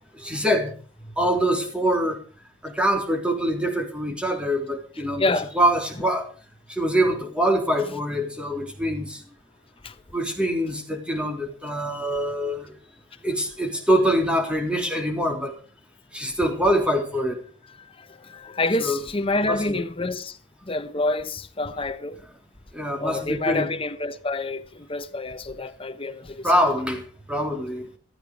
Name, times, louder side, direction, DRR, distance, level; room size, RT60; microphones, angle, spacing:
voice 1, 0.2-0.7 1.0-2.2 2.6-6.3 6.7-9.2 10.1-12.8 13.2-15.5 16.1-17.4 18.8-19.0 19.4-19.8 22.7-23.7 26.4-27.9, equal, 5° right, 3.5 m, -24 dB
voice 2, 5.2-5.5 9.8-9.9 11.9-12.2 18.0-20.4 20.6-22.2 23.0-26.5, left 2 dB, 30° left, 1.2 m, -28 dB
15.0 x 14.0 x 4.9 m
head